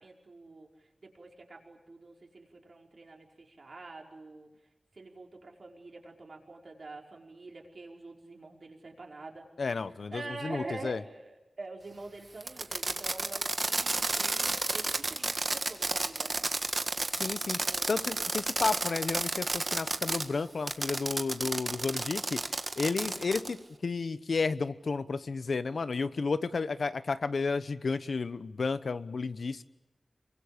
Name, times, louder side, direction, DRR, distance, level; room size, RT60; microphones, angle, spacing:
voice 1, 0.0-4.5 4.9-9.5 10.1-16.5 17.6-18.3 22.9-23.3, right 3 dB, 60° right, 1 dB, 5.1 m, -46 dB
voice 2, 9.6-11.0 17.1-17.6 17.9-22.4 22.8-29.6, left 4 dB, 75° left, 13 dB, 1.0 m, -32 dB
Fireworks, 12.4-20.2 20.7-23.5, right 2 dB, 40° right, 1.7 m, -31 dB
28.0 x 24.0 x 8.7 m, 1.0 s
wide cardioid pair, 95°, 0 cm